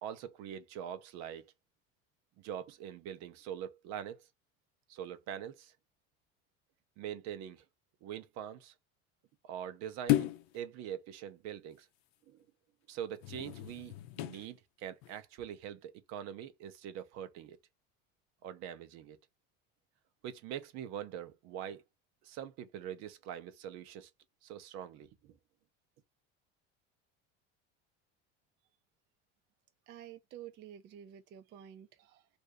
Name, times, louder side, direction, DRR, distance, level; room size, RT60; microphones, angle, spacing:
voice 1, 0.0-1.5 2.4-4.3 4.9-5.7 7.0-7.6 8.0-8.7 9.4-11.9 12.3-12.4 12.9-17.6 18.4-19.2 20.2-21.8 22.2-24.1 24.4-25.4, right 9 dB, 65° right, 0.8 m, -43 dB
sound 1, 10.1-10.6 13.2-14.5 15.0-15.2, left 16 dB, 90° left, 0.6 m, -33 dB
voice 2, 29.9-32.3, right 10 dB, 35° right, 0.4 m, -50 dB
2.7 x 2.6 x 3.4 m
cardioid pair, 135°, 29 cm